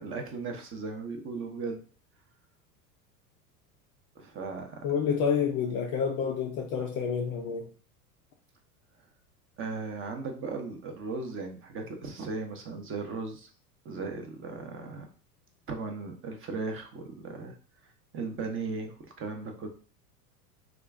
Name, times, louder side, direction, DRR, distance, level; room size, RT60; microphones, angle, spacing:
voice 1, 0.0-1.8 4.1-4.8 9.6-13.5 13.8-15.1 15.7-17.5 18.1-19.7, right 4 dB, 25° right, 4 dB, 0.7 m, -37 dB
voice 2, 4.8-7.7, left 6 dB, 30° left, 1 dB, 0.4 m, -28 dB
2.9 x 2.4 x 3.5 m, 0.39 s
hypercardioid pair, 85°, 48 cm